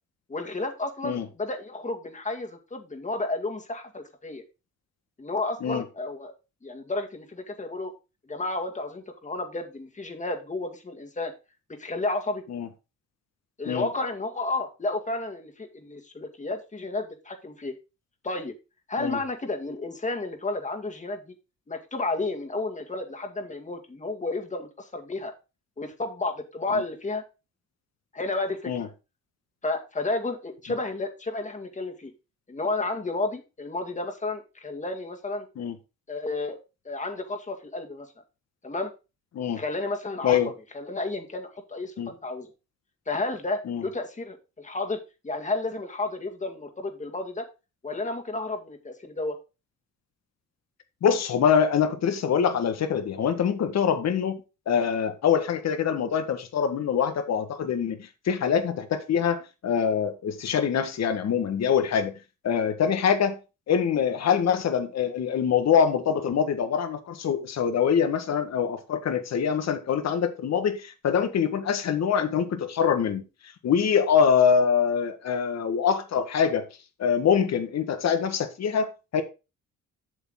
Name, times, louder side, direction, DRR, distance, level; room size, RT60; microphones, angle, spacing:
voice 1, 0.3-4.4 5.2-6.3 6.6-7.9 8.3-11.3 11.7-12.4 13.6-17.7 18.2-18.5 18.9-21.3 21.7-25.3 25.8-27.2 28.1-28.9 29.6-32.1 32.5-35.5 36.1-36.6 36.9-38.1 38.6-38.9 39.6-40.4 40.7-42.5 43.1-45.0 45.2-47.5 47.8-49.4, left 2 dB, 25° left, 2.1 m, -32 dB
voice 2, 51.0-54.4 54.7-62.1 62.4-63.4 63.7-73.2 73.6-76.6 77.0-79.2, left 7 dB, 60° left, 1.6 m, -24 dB
7.9 x 7.1 x 3.8 m
cardioid pair, 90°, 30 cm